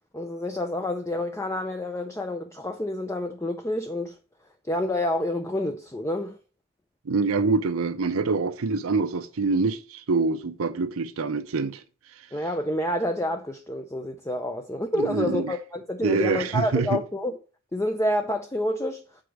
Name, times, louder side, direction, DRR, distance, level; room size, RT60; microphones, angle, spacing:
voice 1, 0.1-4.2 4.6-6.4 12.3-17.4 17.7-19.0, left 1 dB, 15° left, 0.5 m, -28 dB
voice 2, 7.1-11.8 15.0-15.5 16.0-17.0, right 4 dB, 80° right, 0.6 m, -25 dB
6.0 x 4.8 x 5.9 m
head